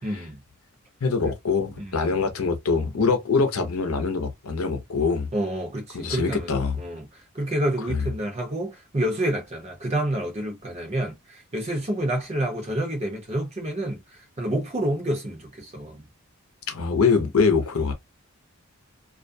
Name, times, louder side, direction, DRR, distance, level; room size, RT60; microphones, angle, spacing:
voice 1, 0.0-0.4 1.3-1.4 1.8-2.2 5.3-16.0, right 1 dB, 30° right, 0.8 m, -29 dB
voice 2, 1.0-5.3 5.9-6.8 7.9-8.0 16.7-17.9, left 4 dB, 75° left, 0.7 m, -23 dB
2.4 x 2.1 x 2.6 m
head